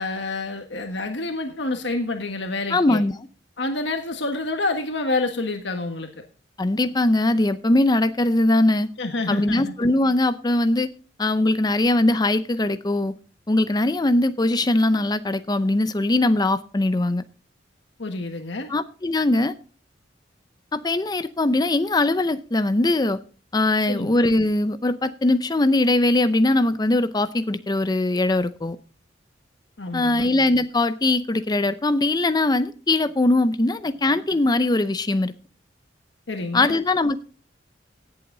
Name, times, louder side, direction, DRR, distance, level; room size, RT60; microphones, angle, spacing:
voice 1, 0.0-3.0 3.6-6.1 9.0-9.7 18.0-18.7 23.9-24.1 29.8-30.3 36.3-36.7, left 2 dB, 70° left, 5 dB, 1.5 m, -28 dB
voice 2, 2.7-3.2 6.6-8.9 9.3-10.9 11.2-13.1 13.5-17.2 18.7-19.5 20.7-23.2 23.5-28.8 29.9-35.3 36.5-37.2, left 2 dB, 20° left, 12 dB, 0.6 m, -21 dB
17.0 x 7.8 x 3.9 m, 0.36 s
head